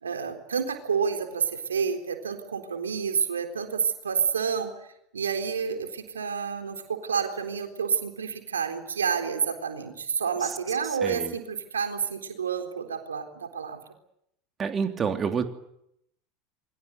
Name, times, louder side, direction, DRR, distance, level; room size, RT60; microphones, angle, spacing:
voice 1, 0.0-4.7 5.1-13.8, right 6 dB, 85° right, 5 dB, 3.9 m, -29 dB
voice 2, 11.0-11.3 14.6-15.4, right 6 dB, 30° right, 6 dB, 3.1 m, -28 dB
28.0 x 23.5 x 8.2 m, 0.75 s
hypercardioid pair, 80°, 0 cm